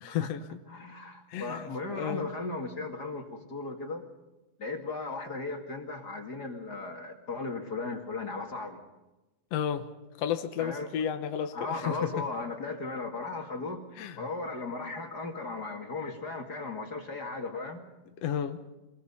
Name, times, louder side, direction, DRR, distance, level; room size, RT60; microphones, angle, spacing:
voice 1, 0.0-0.6 1.3-2.3 9.5-9.9 10.2-12.2 14.0-14.3 18.2-18.6, left 9 dB, 65° left, 7 dB, 1.7 m, -32 dB
voice 2, 0.7-4.0 4.6-8.8 10.6-10.9 11.5-13.8 14.2-17.8, left 3 dB, 30° left, 3 dB, 2.2 m, -36 dB
26.5 x 21.5 x 5.6 m, 1.1 s
omnidirectional pair, 4.1 m